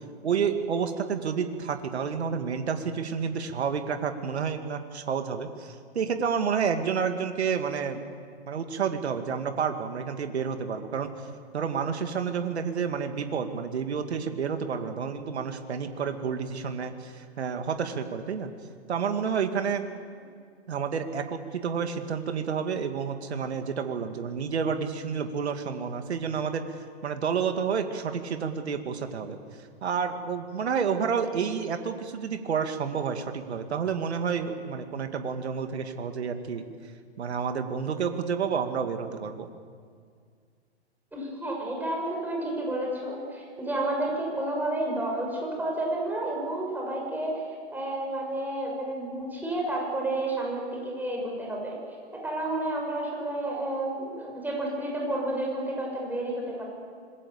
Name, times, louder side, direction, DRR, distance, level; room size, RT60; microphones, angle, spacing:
voice 1, 0.2-8.0 8.4-11.1 11.5-18.5 18.9-19.9 20.7-26.6 27.0-29.4 29.8-36.7 37.2-39.5, right 6 dB, 70° right, 7 dB, 2.4 m, -30 dB
voice 2, 41.1-47.4 47.7-51.7 52.1-56.6, right 1 dB, 5° right, -1 dB, 6.5 m, -31 dB
26.0 x 21.5 x 7.1 m, 2.1 s
hypercardioid pair, 125°, 34 cm